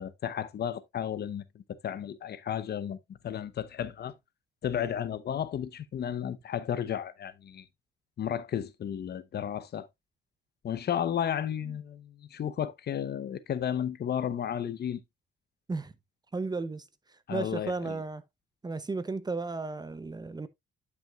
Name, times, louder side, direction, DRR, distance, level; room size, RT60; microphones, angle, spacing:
voice 1, 0.0-3.0 3.2-4.1 4.6-7.6 8.2-9.9 10.6-15.0 17.3-18.0, left 9 dB, 55° left, 0.8 m, -33 dB
voice 2, 16.3-16.8 17.3-18.2 18.6-20.5, right 3 dB, 20° right, 0.7 m, -34 dB
10.5 x 6.0 x 2.3 m
cardioid pair, 90°, 20 cm